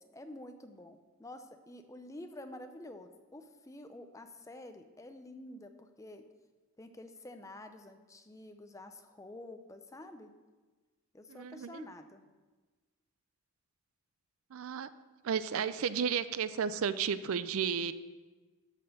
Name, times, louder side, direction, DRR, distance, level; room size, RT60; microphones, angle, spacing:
voice 1, 0.0-6.3 6.8-10.3 11.1-12.3, left 1 dB, 15° left, 7 dB, 0.5 m, -49 dB
voice 2, 11.3-11.8 14.5-14.9 15.2-17.9, right 7 dB, 70° right, 14 dB, 0.4 m, -33 dB
12.5 x 4.3 x 6.5 m, 1.3 s
head